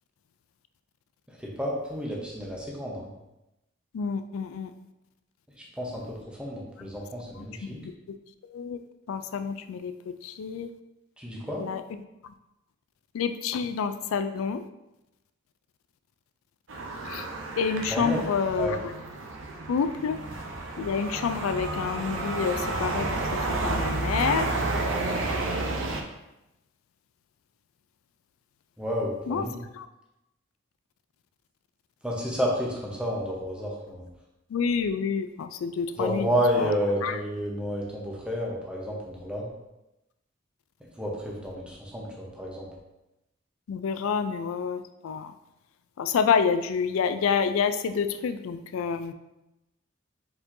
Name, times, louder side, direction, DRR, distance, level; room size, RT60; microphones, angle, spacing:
voice 1, 1.3-3.1 5.8-7.8 11.2-11.7 17.9-18.2 18.6-18.8 28.8-29.6 32.0-34.1 36.0-39.5 41.0-42.7, equal, 5° right, -3 dB, 0.8 m, -30 dB
voice 2, 3.9-4.7 6.8-6.9 7.4-8.2 8.5-8.8 9.1-9.9 10.2-10.7 11.6-11.8 12.2-12.3 13.1-14.6 17.1-17.3 17.6-18.8 19.7-20.2 20.8-23.4 23.6-24.5 29.3-29.5 29.7-29.9 34.5-36.3 36.6-36.7 37.0-37.2 43.7-45.3 46.0-49.1, left 6 dB, 90° left, 10 dB, 0.3 m, -28 dB
sound 1, 16.7-26.0, right 2 dB, 70° right, 0.6 m, -31 dB
4.3 x 4.3 x 2.6 m, 0.93 s
head